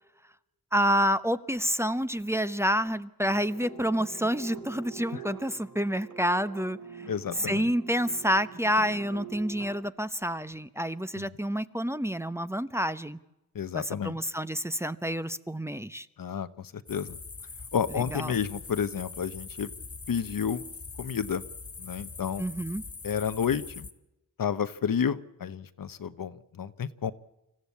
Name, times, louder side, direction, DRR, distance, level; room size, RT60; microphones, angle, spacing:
voice 1, 0.7-7.1 7.4-13.2 13.7-16.1 17.9-18.4 22.4-22.8, equal, 10° right, 13 dB, 0.8 m, -28 dB
sound 1, 3.2-9.8, right 5 dB, 55° right, 4.8 m, -45 dB
voice 2, 7.1-7.7 11.2-11.3 13.5-14.2 16.2-17.2 17.7-19.7 20.1-20.6 21.0-21.4 21.8-22.4 23.0-23.9 24.4-27.1, left 7 dB, 70° left, 13 dB, 1.1 m, -31 dB
sound 2, 16.9-23.9, left 4 dB, 40° left, 1.8 m, -43 dB
26.0 x 15.0 x 8.5 m, 0.91 s
cardioid pair, 75°, 35 cm